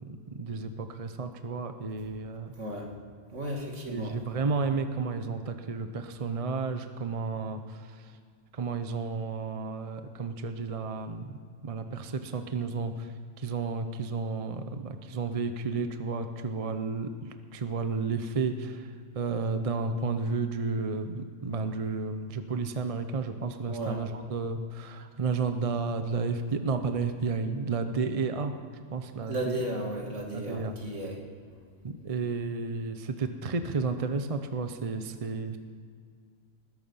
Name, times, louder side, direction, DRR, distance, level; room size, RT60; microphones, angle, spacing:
voice 1, 0.1-2.5 3.9-8.0 8.5-11.3 11.6-13.1 13.4-18.9 19.1-28.5 28.9-29.6 30.3-30.7 31.8-35.6, right 4 dB, 35° right, 8 dB, 0.7 m, -32 dB
voice 2, 2.6-2.9 3.3-4.2 23.6-24.0 29.3-31.2, right 1 dB, 70° right, 0 dB, 2.7 m, -34 dB
20.0 x 11.0 x 5.5 m, 2.2 s
omnidirectional pair, 1.3 m